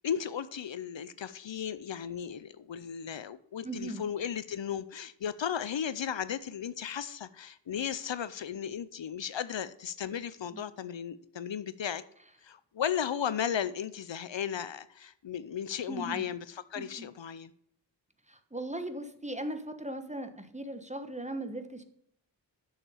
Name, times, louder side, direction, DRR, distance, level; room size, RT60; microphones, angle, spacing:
voice 1, 0.0-12.0 12.4-17.5, left 8 dB, 75° left, 0.6 m, -35 dB
voice 2, 3.6-4.0 10.5-10.6 15.9-16.3 16.8-17.1 18.3-21.8, right 1 dB, 15° right, 1.2 m, -38 dB
7.1 x 6.7 x 6.8 m
wide cardioid pair, 45°, 45 cm